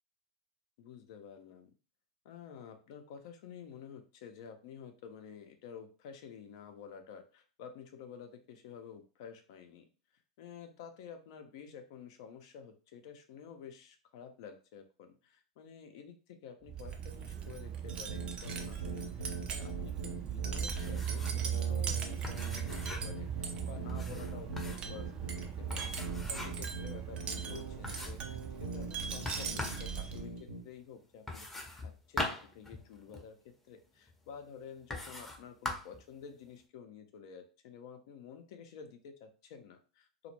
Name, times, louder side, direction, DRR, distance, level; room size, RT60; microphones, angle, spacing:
voice 1, 0.8-1.7 2.2-9.9 10.4-25.3 25.6-26.0 26.3-40.3, left 7 dB, 60° left, 6 dB, 0.5 m, -50 dB
Wind chime, 16.7-30.4, right 8 dB, 35° right, 0.4 m, -38 dB
sound 1, 17.9-30.6, right 3 dB, 85° right, 0.8 m, -43 dB
sound 2, 20.7-21.5 21.7-21.8 22.2-23.2 23.9-24.9 25.7-26.7 27.2-27.3 27.8-28.3 29.2-29.9 31.3-33.3 34.1-34.2 34.9-35.4 35.6-36.0, left 2 dB, 10° left, 0.6 m, -41 dB
2.0 x 2.0 x 2.9 m, 0.35 s
hypercardioid pair, 90°, 3 cm